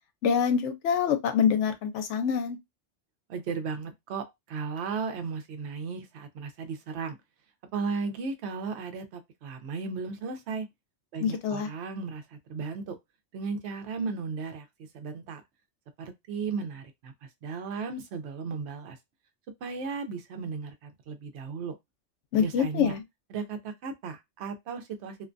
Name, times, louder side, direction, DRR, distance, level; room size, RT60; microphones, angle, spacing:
voice 1, 0.2-2.6 11.2-11.7 22.3-23.0, left 7 dB, 80° left, 0.9 m, -25 dB
voice 2, 3.3-7.2 7.7-10.7 11.1-13.0 13.3-14.7 14.9-15.4 16.0-17.1 17.4-19.0 19.6-21.7 22.4-22.9 23.3-25.2, right 5 dB, 70° right, 0.9 m, -35 dB
2.5 x 2.2 x 2.5 m
omnidirectional pair, 1.2 m